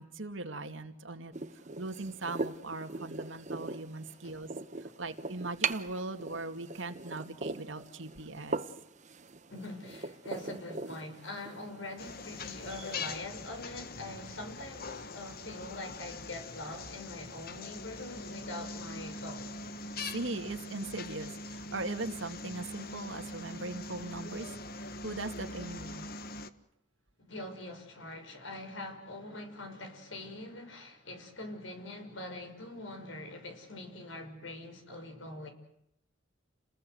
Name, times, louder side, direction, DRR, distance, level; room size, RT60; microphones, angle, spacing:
voice 1, 0.0-1.3 1.8-4.5 4.8-8.6 20.1-24.5 25.0-26.1, right 2 dB, 75° right, 2.4 m, -39 dB
sound 1, 1.3-13.2, right 3 dB, 40° right, 1.0 m, -41 dB
voice 2, 9.5-19.5 27.2-35.5, left 1 dB, 75° left, 6.2 m, -43 dB
sound 2, 12.0-26.5, left 2 dB, 50° left, 1.4 m, -42 dB
30.0 x 20.5 x 8.0 m
head